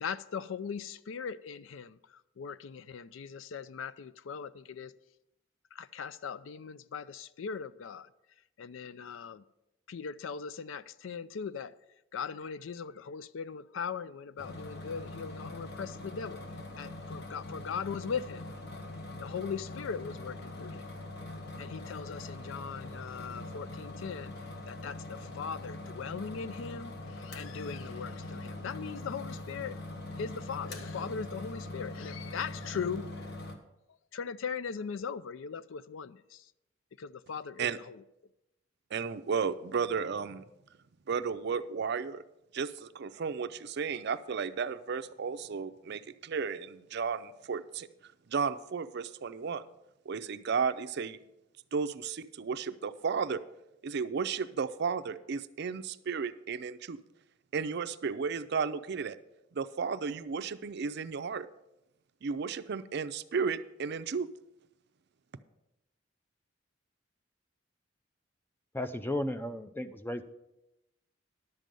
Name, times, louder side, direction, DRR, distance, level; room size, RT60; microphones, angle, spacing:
voice 1, 0.0-4.9 5.7-8.1 8.6-9.4 9.9-11.7 12.1-16.5 16.8-18.5 19.2-20.9 21.6-24.3 24.7-29.8 30.2-33.4 34.1-36.5 37.0-38.0, left 6 dB, 80° left, 0.4 m, -39 dB
sound 1, 14.4-33.6, left 2 dB, 60° left, 1.2 m, -42 dB
voice 2, 38.9-40.4 41.1-42.2 42.5-47.9 48.3-49.6 50.1-51.2 51.7-53.4 53.8-57.0 57.5-59.2 59.5-61.5 62.2-64.3, right 5 dB, 55° right, 0.4 m, -33 dB
voice 3, 68.7-70.2, left 1 dB, 10° left, 0.5 m, -34 dB
11.0 x 7.6 x 5.3 m
head